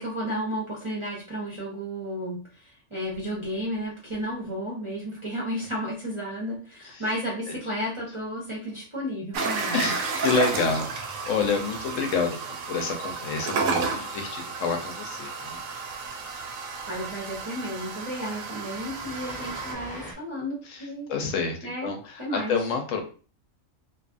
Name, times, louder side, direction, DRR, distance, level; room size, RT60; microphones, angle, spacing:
voice 1, 0.0-9.9 16.9-21.1 21.6-22.5, equal, 30° right, -5 dB, 0.6 m, -33 dB
sound 1, 9.3-19.7, right 4 dB, 80° right, 1.0 m, -32 dB
voice 2, 9.7-12.4 12.6-15.6 20.7-23.0, left 5 dB, 75° left, 4 dB, 0.9 m, -28 dB
Train, 16.3-16.4 16.8-20.1, left 1 dB, 30° left, 0.4 m, -44 dB
2.5 x 2.4 x 2.4 m, 0.37 s
omnidirectional pair, 1.4 m